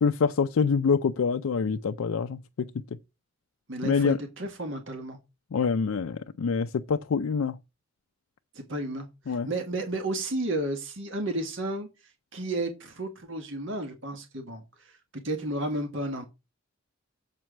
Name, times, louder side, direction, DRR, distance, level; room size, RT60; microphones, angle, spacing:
voice 1, 0.0-3.0 3.8-4.2 5.5-7.6 9.3-9.5, left 5 dB, 85° left, 0.4 m, -26 dB
voice 2, 3.7-5.2 8.5-11.9 12.3-15.0 15.2-16.2, right 1 dB, 65° right, 1.7 m, -32 dB
7.5 x 4.6 x 6.2 m
head